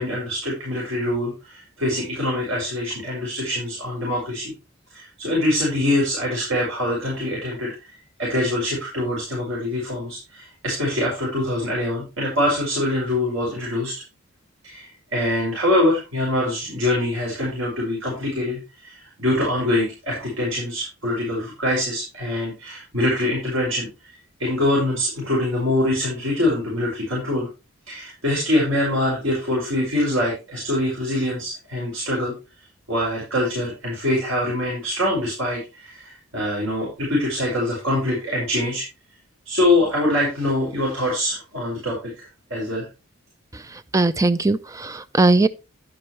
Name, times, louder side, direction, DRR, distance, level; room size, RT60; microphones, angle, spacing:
voice 1, 0.0-4.5 4.9-7.7 8.2-13.9 14.6-24.1 24.4-27.5 27.9-32.3 32.9-38.8 39.5-42.9, left 1 dB, 75° right, 5.4 m, -24 dB
voice 2, 43.9-45.5, right 2 dB, 15° right, 0.4 m, -19 dB
10.5 x 9.9 x 3.1 m
head